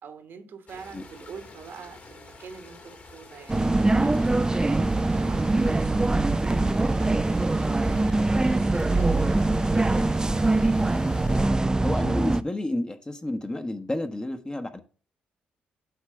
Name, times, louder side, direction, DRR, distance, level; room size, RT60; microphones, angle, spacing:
voice 1, 0.0-3.7 4.0-8.2 8.7-10.6, right 6 dB, 65° right, 1.4 m, -45 dB
sound 1, 0.7-11.5, left 3 dB, 40° left, 2.1 m, -48 dB
sound 2, 3.5-12.4, right 2 dB, 15° right, 0.4 m, -23 dB
voice 2, 11.8-14.8, left 1 dB, 20° left, 1.1 m, -31 dB
8.2 x 3.3 x 6.2 m
hypercardioid pair, 50°, 4 cm